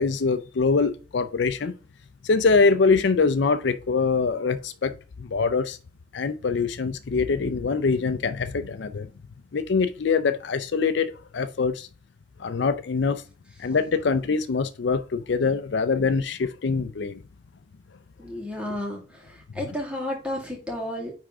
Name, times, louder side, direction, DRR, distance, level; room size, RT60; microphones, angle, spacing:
voice 1, 0.0-1.8 2.2-4.9 5.2-5.8 6.1-9.1 9.5-11.9 12.4-13.2 13.6-17.2, left 4 dB, 60° left, 0.5 m, -24 dB
voice 2, 18.2-21.1, left 1 dB, 5° right, 2.1 m, -32 dB
9.6 x 3.5 x 3.7 m
head